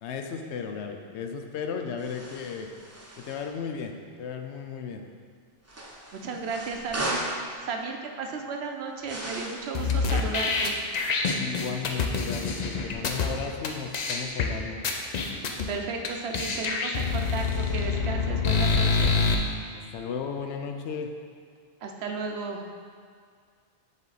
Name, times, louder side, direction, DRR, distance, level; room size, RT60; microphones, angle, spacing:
voice 1, 0.0-2.7 3.2-3.9 4.2-5.0 11.4-14.8 19.7-21.1, left 6 dB, 80° left, 4 dB, 0.9 m, -35 dB
sound 1, 2.0-3.5 5.7-7.4 9.0-9.7, right 1 dB, 20° right, 0.5 m, -36 dB
voice 2, 6.1-7.2 7.6-10.8 15.7-19.2 21.8-22.6, right 4 dB, 70° right, 3 dB, 0.9 m, -34 dB
sound 2, 9.7-13.3 13.6-13.7 13.9-14.5 14.8-15.7 16.0-16.1 16.3-19.3, left 4 dB, 50° left, 0.5 m, -26 dB
7.5 x 3.5 x 4.0 m, 2.1 s
omnidirectional pair, 1.1 m